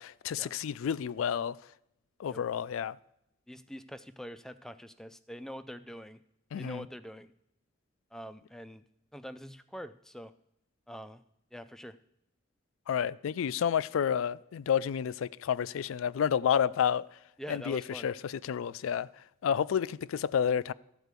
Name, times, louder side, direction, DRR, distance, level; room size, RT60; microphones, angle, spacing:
voice 1, 0.0-1.6 2.2-3.0 6.5-6.9 12.9-17.1 17.5-19.1 19.4-20.7, left 8 dB, 80° left, 0.3 m, -30 dB
voice 2, 3.5-6.2 6.6-7.3 8.1-8.8 9.1-10.3 10.9-11.2 11.5-12.0 17.4-18.1, equal, ahead, 0.3 m, -44 dB
13.5 x 4.5 x 8.1 m
head